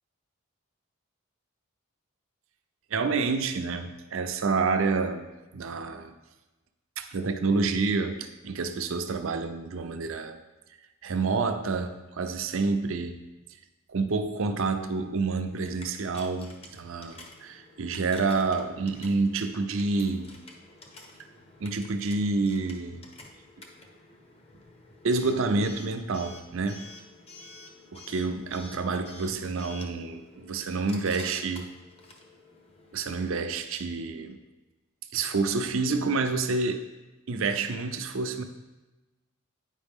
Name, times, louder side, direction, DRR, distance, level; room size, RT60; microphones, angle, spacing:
voice 1, 2.9-5.3 5.5-6.1 7.0-10.4 11.0-13.2 13.9-20.3 21.6-23.0 25.0-26.9 27.9-31.7 32.9-34.4 35.1-36.9 37.3-38.4, right 4 dB, 65° right, 8 dB, 0.5 m, -28 dB
Coin (dropping) / Alarm, 15.5-33.0, left 2 dB, 25° left, 0.7 m, -50 dB
9.0 x 4.9 x 3.6 m, 1.1 s
head